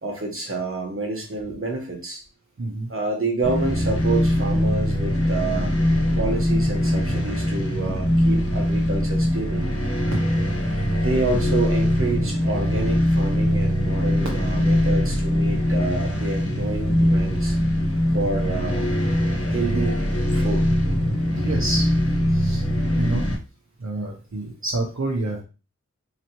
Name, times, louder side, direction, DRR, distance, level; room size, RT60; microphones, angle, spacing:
voice 1, 0.0-2.2 2.9-5.7 6.2-9.7 10.9-17.6 18.1-19.1 19.5-20.0 20.3-20.7, right 3 dB, 45° right, 0 dB, 1.3 m, -28 dB
voice 2, 2.6-2.9 21.3-21.9 22.3-22.6 23.0-23.3 23.8-25.4, right 2 dB, 65° right, -3 dB, 0.9 m, -28 dB
sound 1, 3.4-23.3, equal, 50° left, 1.3 m, -22 dB
4.0 x 3.0 x 3.0 m, 0.32 s
wide cardioid pair, 50°, 29 cm